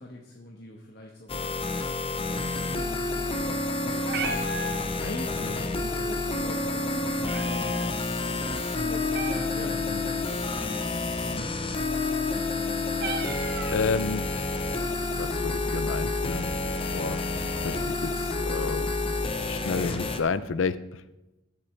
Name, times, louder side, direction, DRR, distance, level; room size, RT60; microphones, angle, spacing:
voice 1, 0.0-1.5 2.3-10.6 10.9-12.2, left 1 dB, 55° left, -1 dB, 1.3 m, -42 dB
sound 1, 1.3-20.2, left 3 dB, 30° left, 0.8 m, -29 dB
Meow, 3.9-14.3, right 2 dB, 55° right, 1.1 m, -39 dB
voice 2, 13.7-14.2 15.1-16.5 16.9-17.2 17.6-17.7 18.0-18.1 18.5-18.9 19.4-20.8, left 5 dB, 85° left, 15 dB, 0.5 m, -29 dB
21.5 x 7.2 x 3.3 m, 1.0 s
head